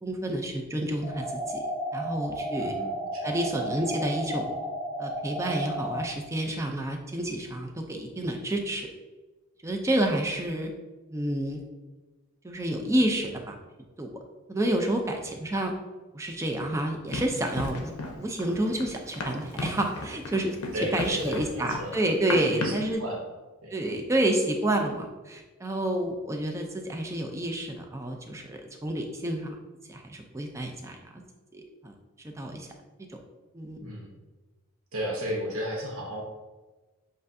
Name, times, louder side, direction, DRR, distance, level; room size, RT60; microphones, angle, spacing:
voice 1, 0.0-1.6 1.9-2.7 3.2-4.6 5.0-8.9 9.6-10.7 11.1-11.6 12.4-13.5 14.0-14.1 14.5-15.7 16.1-17.9 18.2-20.6 20.9-23.0 23.7-29.5 29.9-31.0 31.5-32.7 33.1-33.2 33.5-33.9, right 1 dB, 15° right, 3 dB, 0.4 m, -29 dB
sound 1, 1.0-6.0, right 1 dB, 50° right, 1.1 m, -33 dB
voice 2, 2.6-3.5 20.7-22.0 22.4-23.3 23.6-23.8 33.8-34.2 34.9-36.2, equal, 75° right, -2 dB, 0.9 m, -34 dB
Run, 17.1-22.9, left 2 dB, 85° left, 0.6 m, -36 dB
7.5 x 2.5 x 2.6 m, 1.2 s
head